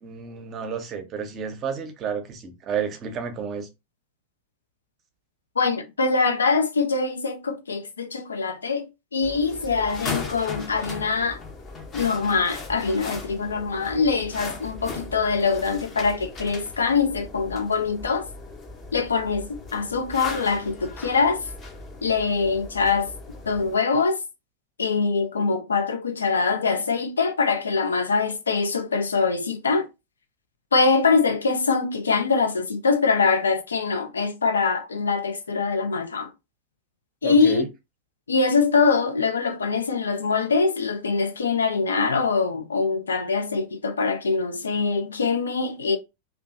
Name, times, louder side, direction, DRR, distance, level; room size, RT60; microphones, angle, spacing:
voice 1, 0.0-3.7 37.2-37.7, right 6 dB, 30° right, 0.6 m, -31 dB
voice 2, 5.6-8.9 9.1-11.4 11.9-18.3 18.9-21.4 22.0-23.1 23.5-24.2 24.8-29.9 30.7-36.3 37.2-37.6 38.3-46.0, left 4 dB, 70° left, 0.4 m, -23 dB
sound 1, 9.2-23.8, left 3 dB, 25° left, 0.6 m, -38 dB
2.6 x 2.3 x 2.4 m
figure-of-eight pair, 90°, 0 cm